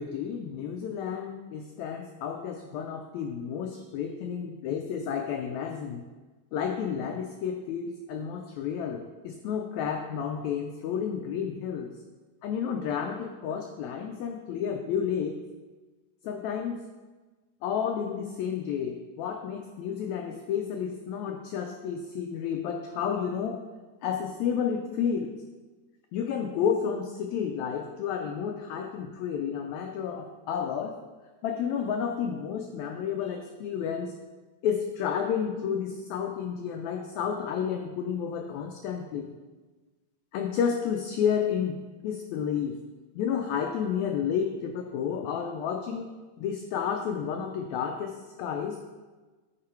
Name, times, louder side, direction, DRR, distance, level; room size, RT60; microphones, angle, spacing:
voice 1, 0.0-6.0 6.5-11.9 12.4-15.4 16.2-16.9 17.6-23.6 24.0-25.3 26.1-30.9 31.4-34.1 34.6-39.3 40.3-41.8 42.0-42.8 43.1-46.1 46.4-48.8, left 7 dB, 80° left, 3 dB, 1.6 m, -31 dB
8.7 x 3.7 x 4.4 m, 1.3 s
omnidirectional pair, 3.7 m